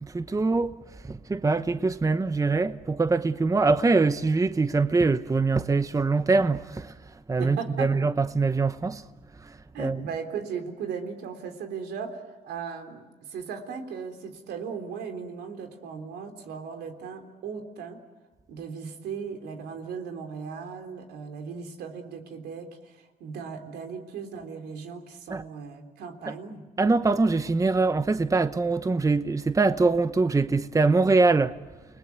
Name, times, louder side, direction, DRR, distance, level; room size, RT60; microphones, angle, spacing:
voice 1, 0.0-0.7 1.0-6.9 7.3-9.0 9.8-10.0 25.3-25.4 26.8-31.6, right 3 dB, 20° right, 0.9 m, -23 dB
voice 2, 7.4-7.9 9.7-18.0 18.5-26.6, right 6 dB, 85° right, 3.6 m, -37 dB
29.5 x 20.0 x 9.4 m
cardioid pair, 90°, 17 cm